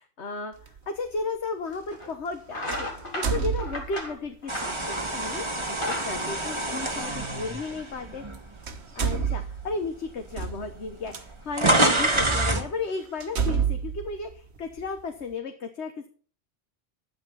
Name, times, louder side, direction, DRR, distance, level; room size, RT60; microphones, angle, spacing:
voice 1, 0.2-5.5 5.8-8.2 8.5-16.1, left 4 dB, 85° left, 5 dB, 1.5 m, -34 dB
sound 1, 0.6-0.8 2.7-4.2 5.1-5.3 7.2-7.3 8.2-8.4 8.6-11.2 11.9-12.0 12.5-12.6 13.2-15.0, right 7 dB, 75° right, 1.4 m, -29 dB
sound 2, 1.2-1.3 1.9-2.1 2.5-5.2 5.6-7.2, left 1 dB, 50° left, 4.0 m, -35 dB
sound 3, 4.5-8.7 9.2-9.4 10.3-10.4 10.6-12.7, right 1 dB, 25° right, 1.8 m, -26 dB
12.5 x 9.7 x 5.6 m, 0.43 s
omnidirectional pair, 1.1 m